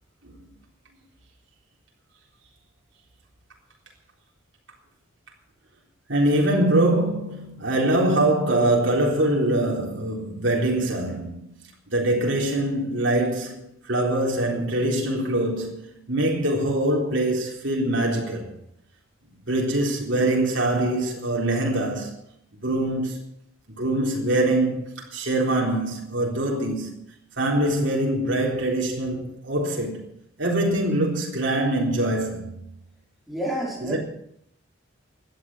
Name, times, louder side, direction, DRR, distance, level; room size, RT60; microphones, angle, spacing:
voice 1, 6.1-11.6 11.9-18.5 19.5-22.1 22.6-23.2 23.7-26.9 27.4-30.1 30.4-32.6 33.8-34.0, right 1 dB, 60° right, 3.8 m, -23 dB
voice 2, 33.3-34.0, right 1 dB, ahead, 5.2 m, -29 dB
17.0 x 11.5 x 6.2 m
head